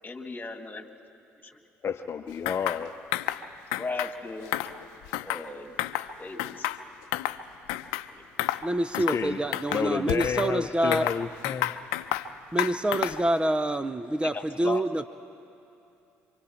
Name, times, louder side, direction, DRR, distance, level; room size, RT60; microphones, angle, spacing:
voice 1, 0.0-0.9 3.8-4.5 5.2-5.7 6.2-6.6 8.1-8.2 11.8-11.9 14.3-14.8, left 3 dB, 25° left, 6 dB, 2.2 m, -36 dB
voice 2, 1.8-2.9 9.0-9.4 9.7-11.7, left 6 dB, 45° left, 7 dB, 0.8 m, -30 dB
sound 1, 2.5-2.8 3.1-3.4 3.7-4.1 4.5-5.5 5.8-6.1 6.4-7.4 7.7-8.1 8.4-8.6 8.9-9.2 9.5-10.5 10.9-12.3 12.6-13.3, left 15 dB, 80° left, 0.6 m, -30 dB
voice 3, 8.6-11.1 12.5-15.1, right 1 dB, 15° right, 13 dB, 0.6 m, -27 dB
27.5 x 24.5 x 4.4 m, 2.8 s
hypercardioid pair, 55°, 7 cm